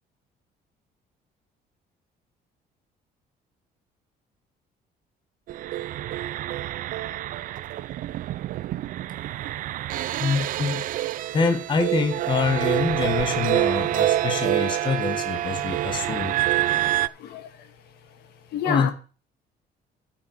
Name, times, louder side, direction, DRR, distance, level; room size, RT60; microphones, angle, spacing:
sound 1, 5.5-17.1, right 14 dB, 55° right, 0.4 m, -27 dB
voice 1, 10.2-10.8 11.3-16.4 18.6-18.9, left 5 dB, 30° left, 1.6 m, -25 dB
voice 2, 16.7-17.7 18.5-18.9, left 8 dB, 75° left, 1.6 m, -31 dB
13.0 x 6.1 x 4.6 m
cardioid pair, 160°, 17 cm